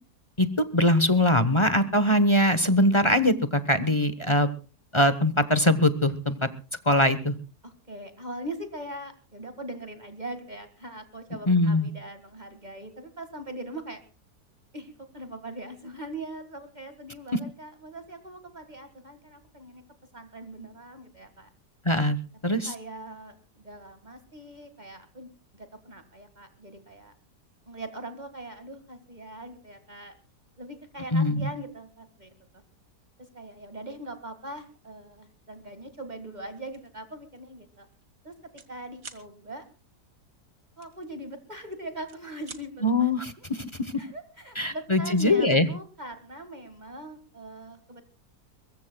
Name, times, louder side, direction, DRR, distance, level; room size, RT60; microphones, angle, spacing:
voice 1, 0.4-4.5 4.9-6.5 6.9-7.3 11.5-11.9 21.8-22.2 22.4-22.7 31.1-31.5 42.8-43.9 44.6-45.7, left 1 dB, 20° left, 12 dB, 0.9 m, -22 dB
voice 2, 7.6-14.0 14.7-19.8 20.1-21.5 22.5-27.1 27.7-30.2 30.6-32.3 33.2-37.9 38.2-38.3 38.7-39.7 40.8-43.5 44.0-48.0, right 1 dB, 25° right, 8 dB, 2.0 m, -41 dB
sound 1, 36.7-36.9 37.3-37.5 37.8-38.7 39.0-39.3 40.8-41.6 41.9-42.7, right 5 dB, 55° right, 2.2 m, -46 dB
22.5 x 22.5 x 2.3 m, 0.35 s
omnidirectional pair, 1.7 m